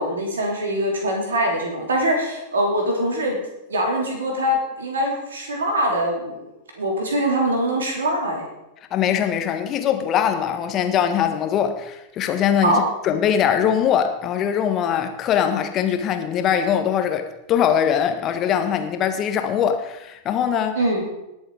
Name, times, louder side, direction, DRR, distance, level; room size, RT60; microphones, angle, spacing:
voice 1, 0.0-3.4 3.7-6.4 6.8-8.4 12.6-12.8 20.8-21.1, right 1 dB, 70° right, 3.8 m, -23 dB
voice 2, 8.9-20.8, left 8 dB, 30° left, 1.5 m, -22 dB
19.5 x 7.2 x 5.0 m
figure-of-eight pair, 90°, 0 cm